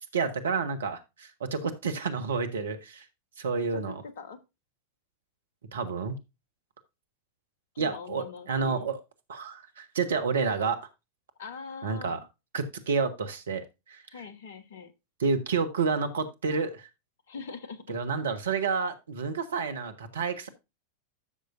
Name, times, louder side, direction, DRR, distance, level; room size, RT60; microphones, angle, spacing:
voice 1, 0.1-3.0 3.4-4.0 5.7-6.2 7.8-9.0 9.3-10.8 11.8-12.2 12.5-14.0 15.2-16.9 17.9-20.5, right 5 dB, 65° right, 9 dB, 1.3 m, -29 dB
voice 2, 3.7-4.4 7.7-8.9 11.4-12.3 14.1-14.9 17.3-17.9, left 5 dB, 60° left, 11 dB, 1.3 m, -42 dB
12.5 x 6.7 x 2.6 m, 0.25 s
figure-of-eight pair, 90°, 0 cm